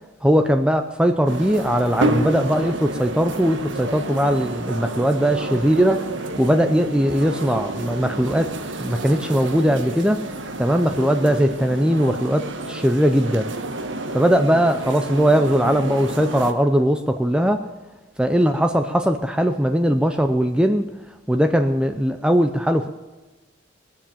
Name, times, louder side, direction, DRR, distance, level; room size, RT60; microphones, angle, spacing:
voice 1, 0.2-6.1 6.4-8.5 8.8-10.2 10.6-13.5 14.1-17.6 18.2-20.9 21.3-22.9, equal, 5° right, 6 dB, 0.5 m, -19 dB
sound 1, 1.3-16.5, right 2 dB, 70° right, 1.3 m, -30 dB
21.0 x 7.5 x 7.1 m, 1.2 s
head